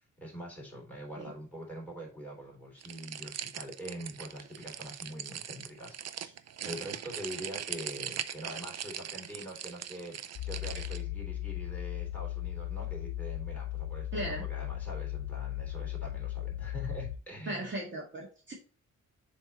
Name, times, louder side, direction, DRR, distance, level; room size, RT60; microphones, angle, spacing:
voice 1, 0.2-6.3 6.6-17.7, equal, 5° left, -3 dB, 3.4 m, -44 dB
sound 1, 2.8-11.0, right 9 dB, 55° right, 0.5 m, -40 dB
sound 2, 10.4-17.2, left 14 dB, 80° left, 0.5 m, -37 dB
voice 2, 14.1-14.4 17.5-18.5, right 1 dB, 40° right, -3 dB, 1.9 m, -37 dB
7.3 x 3.6 x 4.2 m, 0.36 s
wide cardioid pair, 125°, 30 cm